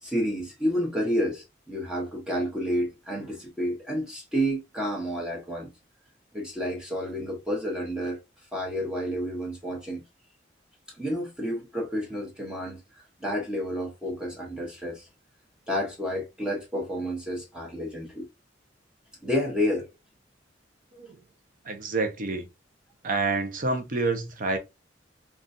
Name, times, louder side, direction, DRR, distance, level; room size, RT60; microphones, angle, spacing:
voice 1, 0.0-5.7 6.3-8.2 8.5-10.0 10.9-12.8 13.2-15.1 15.7-18.3 19.2-19.9, equal, 5° right, 0.8 m, -30 dB
voice 2, 21.6-22.5 23.0-24.6, right 3 dB, 45° right, 0.7 m, -28 dB
3.7 x 2.4 x 2.5 m
head